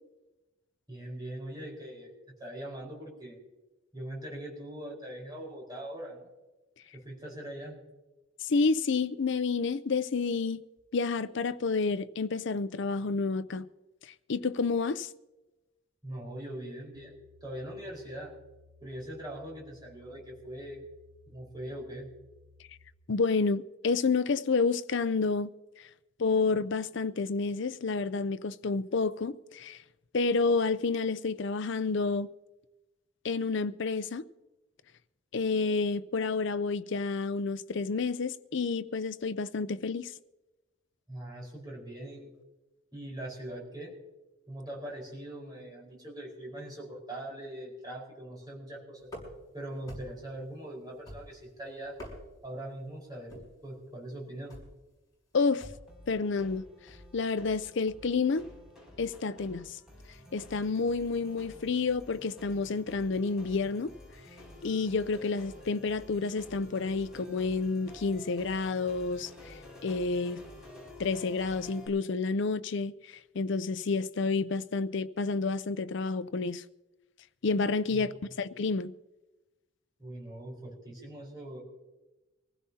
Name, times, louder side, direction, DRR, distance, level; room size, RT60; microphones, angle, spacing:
voice 1, 0.9-2.1 2.4-3.4 3.9-6.3 6.9-7.8 16.0-17.1 17.4-18.3 18.8-20.8 21.3-22.1 41.1-42.3 42.9-43.9 44.5-49.1 49.5-52.0 52.4-54.6 77.9-78.1 80.0-81.6, right 1 dB, 20° right, 4.7 m, -41 dB
voice 2, 8.4-10.6 10.9-13.7 14.3-15.1 23.1-25.5 25.8-25.9 26.2-29.8 30.1-32.3 33.2-34.3 35.3-40.1 55.3-55.7 56.1-56.7 57.1-58.5 59.0-59.8 60.3-63.9 64.6-70.4 71.0-72.9 73.3-76.6 77.4-78.1 78.4-78.9, left 4 dB, 60° left, 0.5 m, -29 dB
sound 1, 16.9-22.9, left 3 dB, 65° right, 1.4 m, -60 dB
sound 2, 49.1-49.5 49.9-50.3 51.1-51.5 51.9-52.5 53.3-53.6 54.5-54.8 55.6-55.9, left 1 dB, 20° left, 5.6 m, -45 dB
sound 3, 55.9-71.9, left 1 dB, 5° right, 6.3 m, -51 dB
24.5 x 16.0 x 2.8 m
head